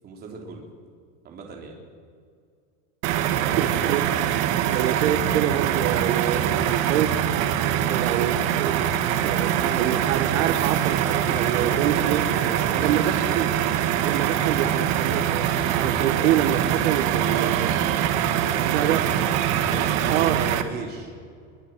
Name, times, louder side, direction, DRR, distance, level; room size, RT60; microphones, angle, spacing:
voice 1, 0.0-0.6 1.2-1.8 3.2-3.9 11.5-13.1 17.3-19.0 19.3-21.1, right 4 dB, 25° right, 0 dB, 3.7 m, -37 dB
sound 1, 3.0-20.6, right 10 dB, 45° right, 1.6 m, -23 dB
voice 2, 3.6-4.0 4.7-7.2 7.9-8.9 9.2-12.2 12.8-13.5 14.0-17.7 18.5-19.0 20.1-20.5, right 11 dB, 85° right, 8 dB, 1.7 m, -26 dB
24.0 x 22.5 x 7.6 m, 2.2 s
cardioid pair, 180°, 37 cm